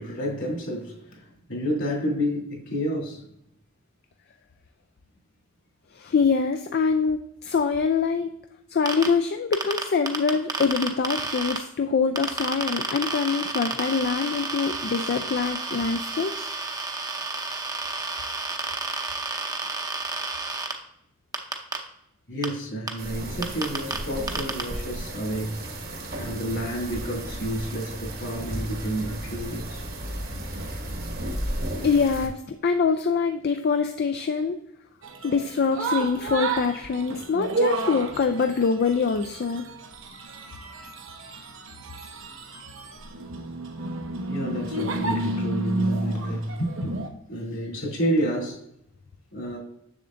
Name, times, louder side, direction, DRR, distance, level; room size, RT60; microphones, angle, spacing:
voice 1, 0.0-3.2 22.3-25.6 26.2-29.8 41.7-41.9 44.3-46.9 47.3-48.6 49.3-49.6, equal, 70° left, 2.8 m, -30 dB
voice 2, 5.9-8.3 8.7-16.5 25.3-25.5 29.0-29.1 31.8-34.6 35.2-39.6, left 5 dB, 50° left, 0.4 m, -24 dB
sound 1, 8.9-9.1 9.5-11.6 12.2-20.7 21.3-21.8 22.4-22.5 22.9-23.0 23.4-24.0 24.3-24.6, right 3 dB, 20° right, 0.7 m, -30 dB
sound 2, 23.0-32.3, right 1 dB, 50° right, 1.2 m, -34 dB
sound 3, 35.0-47.1, right 2 dB, 65° right, 0.8 m, -31 dB
7.1 x 6.8 x 2.5 m
head